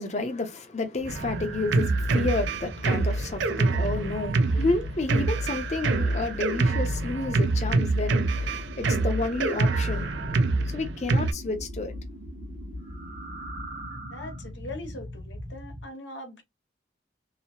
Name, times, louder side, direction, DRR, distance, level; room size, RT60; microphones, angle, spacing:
voice 1, 0.0-10.2 10.7-12.0, left 2 dB, 40° left, 0.6 m, -30 dB
sound 1, 1.0-15.9, right 1 dB, 60° right, 1.0 m, -39 dB
Drum kit, 1.1-11.3, right 3 dB, 75° right, 0.4 m, -26 dB
voice 2, 14.1-16.4, left 2 dB, 80° left, 0.9 m, -41 dB
2.8 x 2.0 x 2.9 m
head